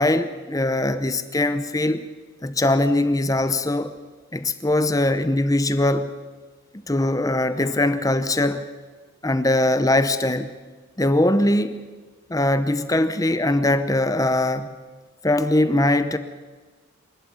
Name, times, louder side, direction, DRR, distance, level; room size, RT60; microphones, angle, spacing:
voice 1, 0.0-2.1 2.4-3.9 4.3-6.1 6.9-8.6 9.2-10.5 11.0-11.8 12.3-14.7 15.2-16.2, left 1 dB, 15° left, 11 dB, 0.8 m, -21 dB
26.0 x 12.0 x 9.4 m, 1.4 s
head